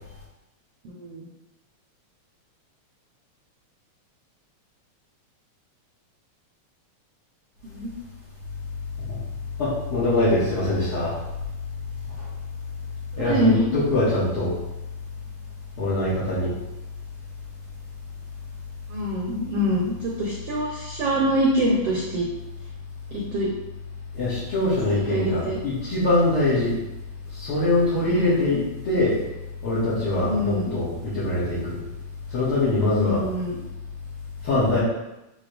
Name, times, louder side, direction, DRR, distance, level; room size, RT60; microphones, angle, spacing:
voice 1, 0.8-1.3 7.7-7.9 13.1-13.7 18.9-22.2 23.1-23.5 24.9-25.6 28.1-28.5 30.2-30.7 33.0-33.6, equal, 65° right, -3 dB, 1.6 m, -25 dB
voice 2, 9.6-11.2 12.2-12.3 13.2-14.5 15.8-16.5 24.1-26.7 27.3-28.6 28.8-29.2 29.6-31.8 32.3-33.2 34.4-34.8, left 2 dB, 50° left, -12 dB, 2.5 m, -23 dB
9.8 x 3.4 x 3.4 m, 0.94 s
omnidirectional pair, 3.6 m